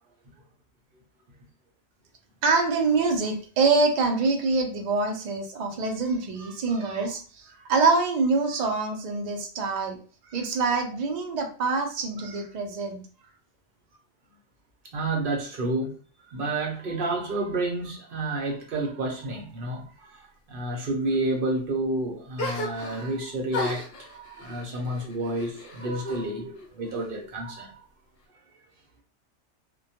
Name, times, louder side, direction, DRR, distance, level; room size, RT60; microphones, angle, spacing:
voice 1, 2.4-10.0 10.2-13.0, right 4 dB, 85° right, 0.3 m, -25 dB
voice 2, 14.9-15.9 16.2-27.9, right 2 dB, 55° right, 0.7 m, -30 dB
sound 1, 22.4-23.2 23.5-26.2 26.6-27.4, left 1 dB, 60° left, 0.7 m, -35 dB
2.2 x 2.2 x 2.7 m
omnidirectional pair, 1.3 m